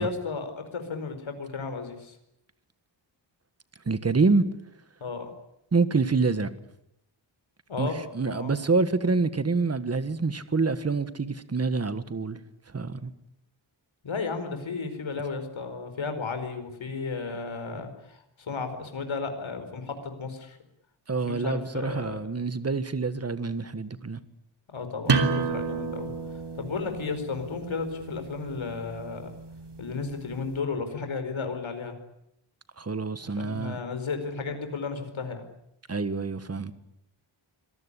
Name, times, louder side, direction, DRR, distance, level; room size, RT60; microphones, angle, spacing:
voice 1, 0.0-2.1 5.0-5.3 7.7-8.0 8.2-8.5 14.0-20.6 21.3-22.2 24.7-26.1 26.6-29.3 29.8-31.9 33.4-35.4, left 4 dB, 80° left, 4.8 m, -33 dB
voice 2, 3.8-4.4 5.7-6.5 7.8-7.9 8.1-12.4 12.7-13.1 21.1-24.2 32.8-33.8 35.9-36.7, right 4 dB, 30° right, 1.6 m, -26 dB
sound 1, 25.1-30.5, right 4 dB, 60° right, 3.2 m, -31 dB
26.0 x 19.0 x 10.0 m
wide cardioid pair, 140°, 46 cm